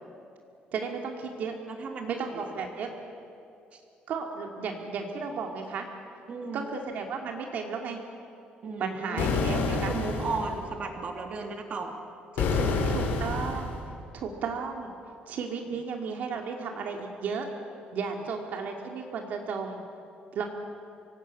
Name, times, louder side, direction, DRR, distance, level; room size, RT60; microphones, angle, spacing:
voice 1, 0.7-1.5 2.1-2.9 4.1-5.9 6.5-8.0 8.8-9.9 12.9-13.7 14.1-15.0 15.3-17.5 17.9-19.8 20.3-20.4, right 5 dB, 60° right, 2 dB, 2.3 m, -34 dB
voice 2, 1.7-2.5 3.7-3.8 6.3-6.7 8.6-9.3 9.7-12.0 12.3-13.0, right 3 dB, 40° right, 3 dB, 2.8 m, -35 dB
sound 1, 9.2-10.6 12.4-13.8, left 4 dB, 75° left, 3.4 m, -28 dB
25.5 x 17.5 x 8.5 m, 2.6 s
cardioid pair, 150°, 3 cm